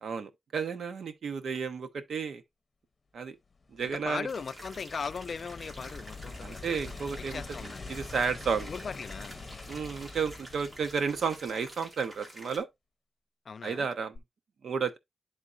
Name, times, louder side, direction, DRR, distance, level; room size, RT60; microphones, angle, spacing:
voice 1, 0.0-2.4 3.1-3.4 3.7-4.3 6.4-7.4 7.9-8.7 9.7-12.7 13.6-14.2 14.6-15.0, right 5 dB, 90° right, 0.8 m, -32 dB
sound 1, 3.5-12.0 14.2-14.3, left 3 dB, 35° left, 0.7 m, -45 dB
voice 2, 3.8-6.7 7.2-8.0 8.7-9.4 13.5-13.9, left 5 dB, 55° left, 0.4 m, -38 dB
sound 2, 4.3-12.6, right 1 dB, 35° right, 2.1 m, -49 dB
11.0 x 3.7 x 2.5 m
wide cardioid pair, 145°, 0 cm